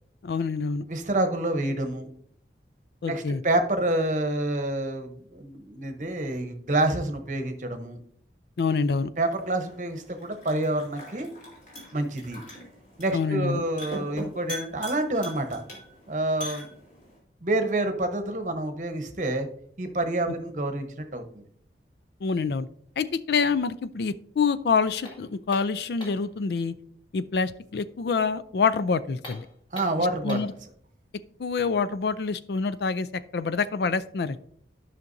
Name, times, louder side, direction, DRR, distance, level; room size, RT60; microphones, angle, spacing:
voice 1, 0.2-0.8 3.0-3.4 8.6-9.1 13.1-13.6 22.2-22.7 23.0-26.7 27.1-29.5 30.2-30.5 31.4-33.1 33.3-34.4, left 5 dB, 65° left, 15 dB, 0.4 m, -26 dB
voice 2, 0.9-2.1 3.1-8.0 9.2-11.3 11.9-12.4 13.0-15.6 16.1-16.7 17.4-19.5 19.8-21.4 29.7-30.4, right 1 dB, 45° right, 7 dB, 0.9 m, -28 dB
sound 1, 9.2-17.2, left 1 dB, 45° left, 3.2 m, -42 dB
sound 2, 25.0-26.3 29.1-30.6, left 1 dB, 30° left, 1.8 m, -43 dB
12.5 x 5.8 x 2.6 m, 0.64 s
head